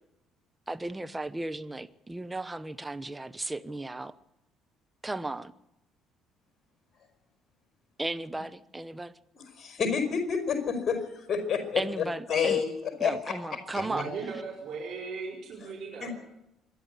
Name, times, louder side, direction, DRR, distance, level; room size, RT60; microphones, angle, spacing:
voice 1, 0.7-4.1 5.0-5.5 8.0-9.1 11.8-12.6 13.0-14.1, right 2 dB, 15° right, 1.1 m, -35 dB
voice 2, 9.3-13.3 13.7-13.8 15.6-15.7 16.0-16.1, left 6 dB, 40° left, 5.1 m, -29 dB
voice 3, 13.8-16.1, right 4 dB, 55° right, 4.9 m, -37 dB
26.5 x 11.5 x 9.9 m
figure-of-eight pair, 50°, 0 cm